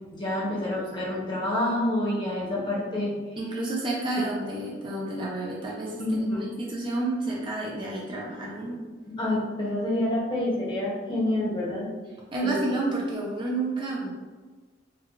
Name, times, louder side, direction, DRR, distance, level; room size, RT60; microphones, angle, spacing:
voice 1, 0.1-3.1 6.0-6.5 9.2-11.9 12.4-12.6, left 1 dB, 25° left, -5 dB, 0.8 m, -27 dB
voice 2, 3.4-8.8 12.3-14.1, right 2 dB, 25° right, -4 dB, 0.5 m, -30 dB
4.6 x 2.3 x 2.4 m, 1.3 s
head